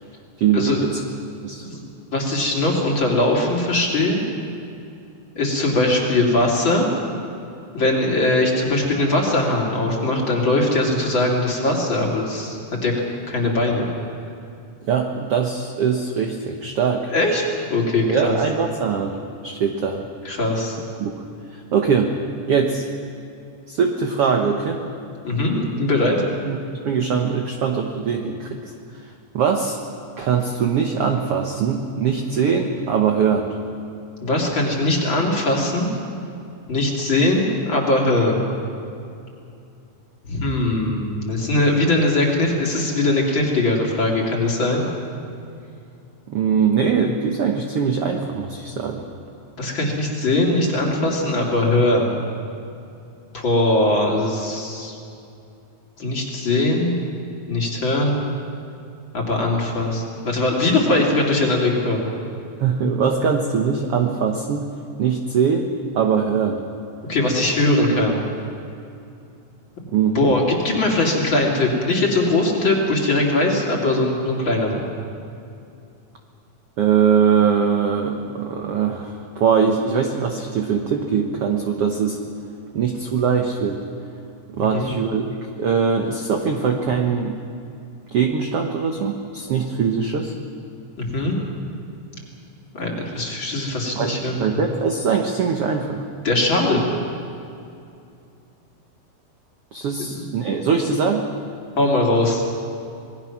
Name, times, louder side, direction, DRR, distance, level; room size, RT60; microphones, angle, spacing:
voice 1, 0.4-1.0 1.4-1.7 14.9-17.1 18.1-19.2 19.4-20.1 21.0-21.1 21.5-22.1 22.5-22.8 23.7-24.8 26.5-28.7 29.3-29.8 30.2-33.6 46.3-49.1 62.6-64.6 65.0-66.6 69.9-70.3 76.8-82.2 82.7-83.9 84.5-87.4 88.1-90.3 92.8-92.9 93.9-94.1 94.4-96.0 99.7-101.3, right 6 dB, 60° right, 3 dB, 1.6 m, -21 dB
voice 2, 2.1-4.2 5.3-6.9 7.7-12.9 13.3-13.9 17.1-17.4 17.7-18.4 20.2-20.8 25.2-26.2 34.2-35.9 36.7-38.5 40.2-44.9 49.6-52.2 53.3-55.0 56.0-57.0 57.5-58.2 59.1-62.1 67.1-68.2 69.8-69.9 70.1-74.8 84.7-84.9 91.0-91.3 92.7-94.4 96.2-96.8 100.0-100.1 101.8-102.4, left 2 dB, 35° left, -2 dB, 3.4 m, -20 dB
27.0 x 20.0 x 6.0 m, 2.6 s
omnidirectional pair, 4.1 m